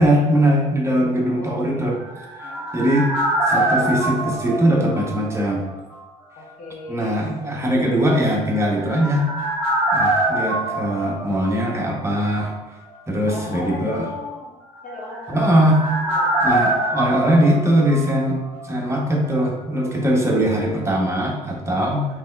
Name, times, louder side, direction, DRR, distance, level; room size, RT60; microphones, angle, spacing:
voice 1, 0.0-2.0 2.7-3.1 3.5-5.7 6.9-9.3 9.9-12.5 13.1-14.0 15.3-15.8 16.4-22.0, equal, 15° right, -1 dB, 0.8 m, -20 dB
voice 2, 1.3-1.9 2.4-2.6 6.3-7.2 13.3-14.5 14.8-16.4, left 3 dB, 50° left, -2 dB, 1.0 m, -37 dB
sound 1, 1.8-5.7 5.9-6.0 8.4-12.2 12.4-12.5 14.8-18.6 18.9-19.0, right 2 dB, 85° left, 1.4 m, -24 dB
4.0 x 3.1 x 2.3 m, 1.1 s
cardioid pair, 110°, 17 cm